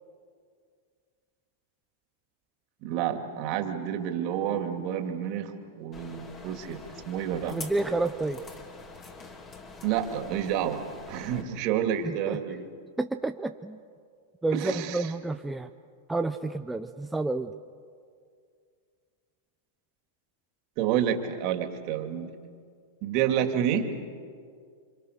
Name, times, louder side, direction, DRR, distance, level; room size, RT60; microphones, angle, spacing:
voice 1, 2.8-6.8 7.0-7.6 9.8-10.8 11.1-12.7 14.5-15.1 20.8-22.3 23.0-23.9, right 9 dB, 50° right, 5 dB, 2.7 m, -29 dB
sound 1, 5.9-11.4, left 3 dB, 25° left, 3.2 m, -45 dB
voice 2, 7.5-8.4 12.0-12.4 13.0-13.8 14.4-15.7 16.1-17.5, right 2 dB, 5° right, 6 dB, 0.7 m, -30 dB
29.0 x 25.5 x 6.8 m, 2.1 s
hypercardioid pair, 115°, 0 cm